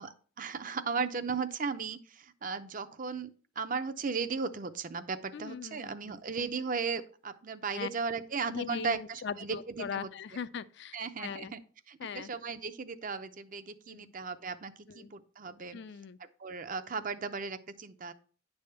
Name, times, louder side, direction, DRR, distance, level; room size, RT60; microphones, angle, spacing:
voice 1, 0.0-10.1 10.9-11.6 11.9-15.8 16.2-18.1, right 5 dB, 40° right, 0.6 m, -36 dB
voice 2, 5.3-6.2 7.7-7.9 8.5-11.5 12.0-12.3 13.9-14.1 14.9-15.1 15.7-16.2, left 6 dB, 55° left, 0.4 m, -40 dB
9.9 x 3.5 x 6.7 m
head